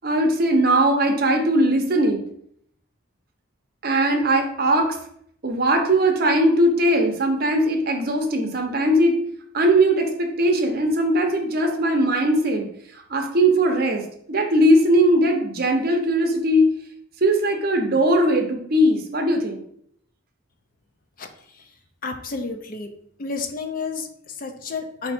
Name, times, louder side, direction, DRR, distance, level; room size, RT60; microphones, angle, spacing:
voice 1, 0.0-2.2 3.8-5.0 5.4-9.2 9.5-12.7 13.1-16.7 17.2-19.6, right 1 dB, 45° right, 3 dB, 0.7 m, -19 dB
voice 2, 21.2-21.6 22.0-22.9 23.2-25.1, left 4 dB, 45° left, 6 dB, 0.4 m, -31 dB
4.3 x 2.8 x 4.2 m, 0.67 s
head